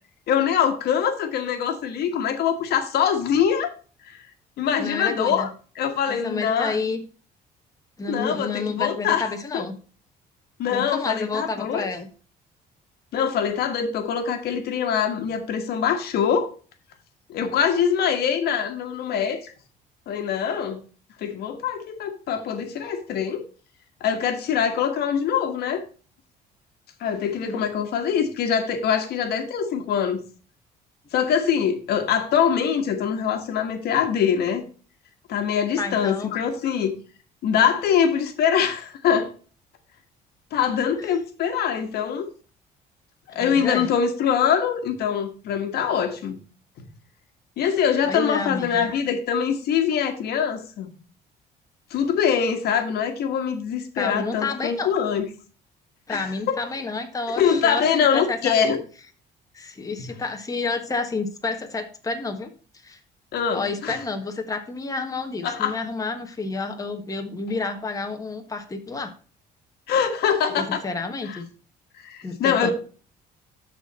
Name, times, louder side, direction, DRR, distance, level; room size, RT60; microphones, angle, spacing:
voice 1, 0.3-3.7 4.0-4.2 4.6-5.5 5.7-6.8 8.1-9.6 10.6-11.9 13.1-16.5 17.3-19.5 20.1-20.8 21.2-23.4 24.0-25.8 27.0-30.2 31.1-34.6 35.3-36.9 37.4-39.3 40.5-42.3 43.3-46.4 47.6-50.9 51.9-55.2 56.1-56.6 57.3-58.8 60.0-60.1 63.3-64.0 65.4-65.8 69.9-70.8 71.2-71.4 72.0-72.7, left 7 dB, 70° left, 1.5 m, -23 dB
voice 2, 4.8-5.5 6.1-7.0 8.0-9.8 10.7-12.1 27.4-27.6 35.8-36.3 43.3-43.9 48.1-48.9 54.0-54.9 56.1-57.8 58.1-58.7 59.5-62.5 62.8-63.0 63.5-69.1 70.6-71.5 72.2-72.7, left 4 dB, 20° left, 1.4 m, -30 dB
12.5 x 4.3 x 4.2 m
cardioid pair, 110°, 17 cm